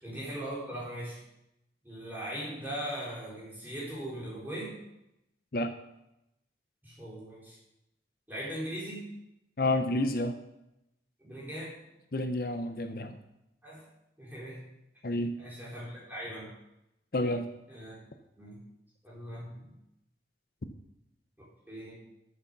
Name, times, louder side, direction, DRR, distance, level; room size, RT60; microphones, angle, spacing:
voice 1, 0.0-1.2 1.8-4.8 6.8-7.6 8.3-9.1 11.2-11.8 13.6-13.8 14.2-14.7 15.4-16.5 17.7-18.0 18.4-18.6 19.0-19.7 21.7-21.9, right 1 dB, 10° right, -7 dB, 4.2 m, -39 dB
voice 2, 9.6-10.4 12.1-13.2 15.0-15.3 17.1-17.4, left 1 dB, 55° left, 8 dB, 0.7 m, -29 dB
8.3 x 7.8 x 6.7 m, 0.86 s
head